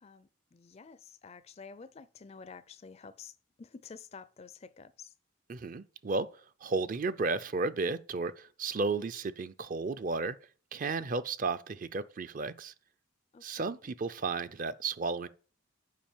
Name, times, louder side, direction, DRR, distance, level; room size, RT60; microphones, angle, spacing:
voice 1, 0.0-3.3 3.6-5.1 13.3-13.8, left 5 dB, 30° left, 0.4 m, -50 dB
voice 2, 5.5-6.3 6.6-10.4 10.7-12.7 13.4-15.3, right 4 dB, 40° right, 0.4 m, -33 dB
7.4 x 5.1 x 7.2 m
head